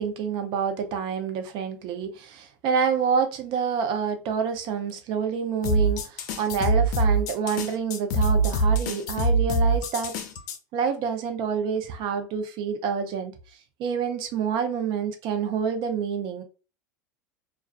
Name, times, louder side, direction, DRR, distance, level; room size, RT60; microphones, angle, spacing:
voice 1, 0.0-10.1 10.7-13.3 13.8-16.4, right 6 dB, 50° right, 0.6 m, -27 dB
sound 1, 5.6-10.6, right 2 dB, 70° left, 0.5 m, -23 dB
2.3 x 2.2 x 2.3 m
hypercardioid pair, 90°, 10 cm